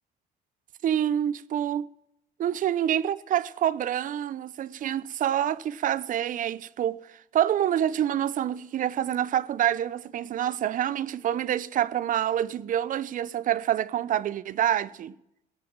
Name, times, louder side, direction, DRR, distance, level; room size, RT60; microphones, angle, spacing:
voice 1, 0.8-1.9 2.4-7.0 7.3-15.1, right 10 dB, 50° right, 0.6 m, -27 dB
17.0 x 5.9 x 8.7 m
cardioid pair, 110°, 17 cm